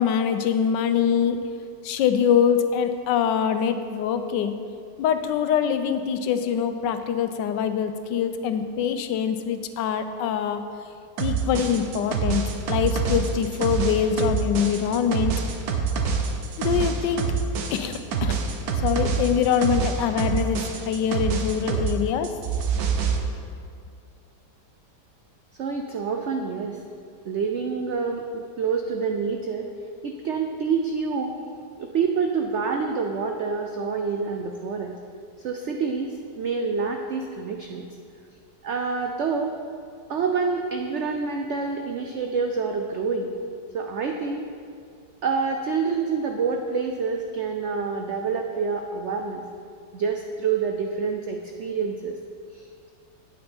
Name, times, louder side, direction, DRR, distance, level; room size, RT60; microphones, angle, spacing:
voice 1, 0.0-1.4 1.8-4.5 5.0-10.6 11.2-15.3 16.6-17.2 17.7-18.4 18.8-22.3, left 8 dB, 85° left, 9 dB, 1.3 m, -24 dB
sound 1, 11.2-22.0 22.2-23.2, right 6 dB, 65° right, 1.2 m, -26 dB
voice 2, 25.6-26.8 27.2-29.7 30.0-31.4 31.8-35.0 35.4-37.9 38.6-39.5 40.1-43.3 43.7-44.5 45.2-49.4 49.9-52.2 52.5-52.9, right 5 dB, 85° right, 3 dB, 0.6 m, -27 dB
8.6 x 8.5 x 4.4 m, 2.3 s
omnidirectional pair, 1.9 m